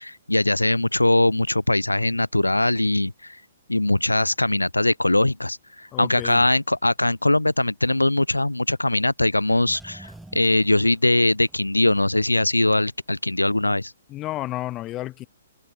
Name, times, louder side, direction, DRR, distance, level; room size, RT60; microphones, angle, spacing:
voice 1, 0.0-3.4 3.7-13.9, left 1 dB, 85° left, 1.1 m, -21 dB
voice 2, 5.9-6.4 14.1-15.3, left 16 dB, 25° left, 1.5 m, -31 dB
sound 1, 9.4-12.3 12.5-12.6, right 2 dB, 5° right, 5.7 m, -47 dB
figure-of-eight pair, 125°, 0 cm